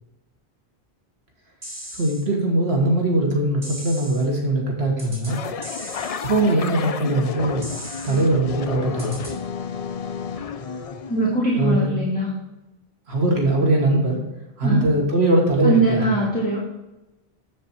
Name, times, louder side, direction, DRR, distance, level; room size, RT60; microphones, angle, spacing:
sound 1, 1.6-2.2 3.6-4.2 5.0-5.3 5.6-6.2 7.6-8.2 9.0-9.3, equal, 50° right, 3.1 m, -37 dB
voice 1, 1.9-5.4 6.2-7.7 8.0-9.2 11.6-12.1 13.1-14.2 14.6-16.2, right 1 dB, 75° right, 0 dB, 1.8 m, -21 dB
sound 2, 5.3-11.4, left 6 dB, 45° left, 0.5 m, -31 dB
voice 2, 11.1-12.3 14.6-14.9 15.6-16.6, right 2 dB, 10° left, -7 dB, 1.8 m, -21 dB
7.6 x 7.4 x 4.3 m, 1.0 s
omnidirectional pair, 1.1 m